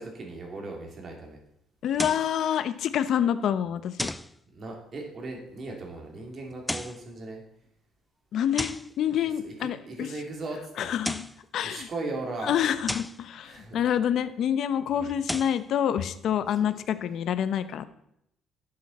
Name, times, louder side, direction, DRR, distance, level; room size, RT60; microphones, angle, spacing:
voice 1, 0.0-1.4 4.5-7.4 9.2-10.9 11.6-12.5 13.4-13.8 15.0-15.1 16.6-16.7, right 2 dB, 40° right, 1 dB, 2.8 m, -38 dB
voice 2, 1.8-4.1 8.3-10.1 10.8-11.2 11.5-11.9 12.4-17.8, left 9 dB, 65° left, 12 dB, 0.7 m, -27 dB
sound 1, 1.9-2.3 4.0-4.3 6.5-7.0 8.6-8.9 10.8-11.4 12.9-13.2 15.1-15.6, left 1 dB, 10° left, 0.4 m, -33 dB
11.0 x 7.8 x 4.1 m, 0.75 s
cardioid pair, 115°, 0 cm